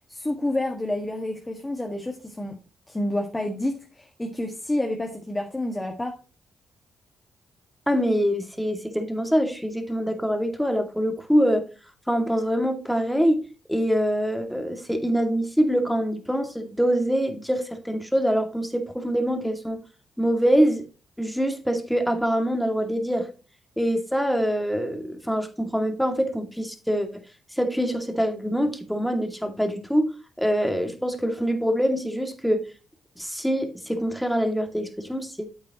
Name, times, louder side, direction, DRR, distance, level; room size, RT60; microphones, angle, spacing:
voice 1, 0.1-2.6 2.9-6.1, left 1 dB, 20° left, 3 dB, 1.7 m, -29 dB
voice 2, 7.9-11.6 12.1-13.4 13.7-19.8 20.2-20.8 21.2-23.3 23.8-27.2 27.5-32.6 33.2-35.5, equal, ahead, 6 dB, 2.3 m, -24 dB
8.8 x 8.1 x 3.0 m, 0.33 s
hypercardioid pair, 45°, 0 cm